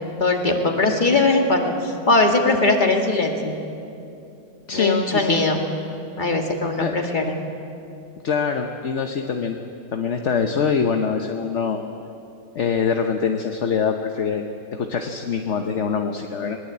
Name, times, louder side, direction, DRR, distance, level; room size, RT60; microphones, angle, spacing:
voice 1, 0.2-3.5 4.7-5.6 6.2-7.4, left 2 dB, 25° left, 3 dB, 2.2 m, -20 dB
voice 2, 4.7-5.4 6.8-6.9 8.2-9.6 9.9-11.8 12.5-16.6, left 6 dB, 45° left, 5 dB, 1.1 m, -24 dB
21.5 x 20.5 x 8.5 m, 2.7 s
omnidirectional pair, 2.0 m